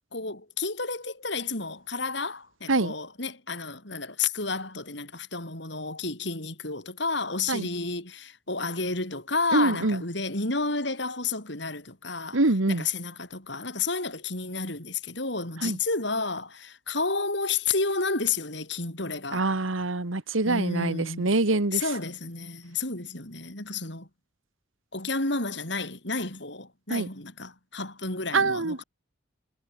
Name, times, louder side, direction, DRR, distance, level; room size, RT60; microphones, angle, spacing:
voice 1, 0.1-12.4 12.7-19.5 20.4-21.3 21.7-24.1 24.9-28.8, left 4 dB, 60° left, 5.8 m, -31 dB
voice 2, 9.5-10.0 12.3-12.8 15.6-15.8 19.3-21.8 26.9-27.1 28.3-28.8, right 2 dB, 85° right, 1.7 m, -25 dB
head